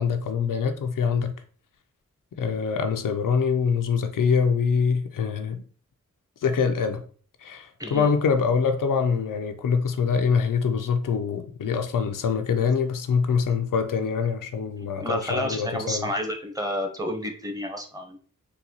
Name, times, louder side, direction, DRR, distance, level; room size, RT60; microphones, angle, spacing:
voice 1, 0.0-1.3 2.4-5.6 6.4-7.0 7.4-16.1, left 6 dB, 85° left, 0.5 m, -24 dB
voice 2, 7.8-8.1 15.0-18.2, left 1 dB, 10° right, 0.8 m, -30 dB
4.0 x 2.2 x 2.8 m
cardioid pair, 55°, 32 cm